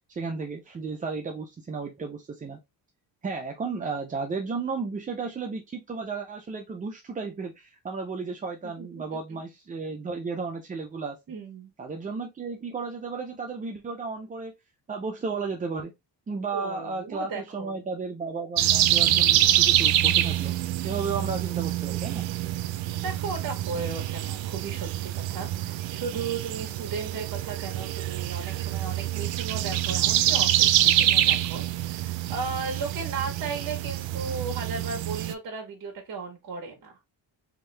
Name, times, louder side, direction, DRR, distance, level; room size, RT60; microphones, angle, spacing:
voice 1, 0.1-2.6 3.2-11.2 11.8-14.5 14.9-15.9 16.3-20.6 20.8-22.3, right 4 dB, 20° right, 0.3 m, -33 dB
voice 2, 8.8-9.4 11.3-11.7 16.5-17.9 22.9-36.9, right 4 dB, 50° right, 1.2 m, -36 dB
sound 1, 18.6-35.3, right 13 dB, 85° right, 0.5 m, -26 dB
3.6 x 2.6 x 3.2 m
cardioid pair, 145°, 45 cm